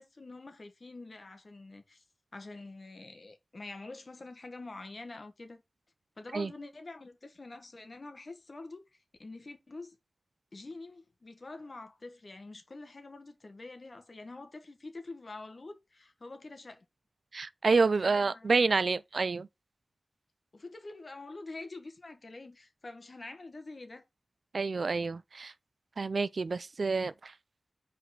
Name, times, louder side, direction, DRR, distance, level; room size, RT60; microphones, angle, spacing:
voice 1, 0.0-2.0 2.3-5.6 6.2-8.8 9.2-10.0 10.5-16.8 18.0-18.7 20.5-24.0, left 2 dB, 55° left, 1.5 m, -46 dB
voice 2, 17.3-19.5 24.5-25.5 26.0-27.3, right 4 dB, 70° right, 0.4 m, -28 dB
5.0 x 4.1 x 5.7 m
wide cardioid pair, 60°, 0 cm